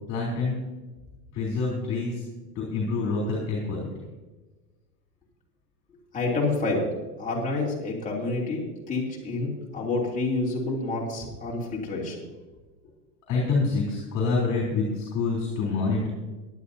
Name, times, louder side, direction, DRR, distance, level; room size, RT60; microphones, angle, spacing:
voice 1, 0.1-0.6 1.3-2.2 2.6-3.9 13.3-16.1, left 3 dB, 35° left, -3 dB, 3.6 m, -26 dB
voice 2, 6.1-6.9 7.2-12.2, left 2 dB, 15° left, -4 dB, 3.1 m, -28 dB
18.0 x 11.0 x 2.8 m, 1.2 s
supercardioid pair, 150°, 49 cm